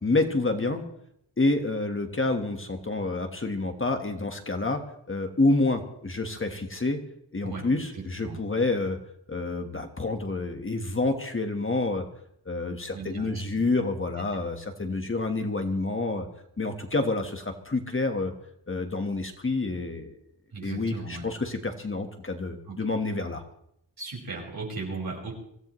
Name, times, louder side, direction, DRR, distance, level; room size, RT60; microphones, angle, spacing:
voice 1, 0.0-0.8 1.4-4.8 5.1-7.0 7.3-9.0 9.3-12.0 12.4-16.3 16.6-18.3 18.7-20.2 20.6-23.4, left 2 dB, 30° left, 5 dB, 1.5 m, -28 dB
voice 2, 7.4-8.4 12.9-13.6 20.5-21.2 22.7-22.8 24.0-25.3, right 3 dB, 60° right, -1 dB, 5.7 m, -37 dB
24.5 x 16.5 x 3.2 m, 0.72 s
wide cardioid pair, 160°, 42 cm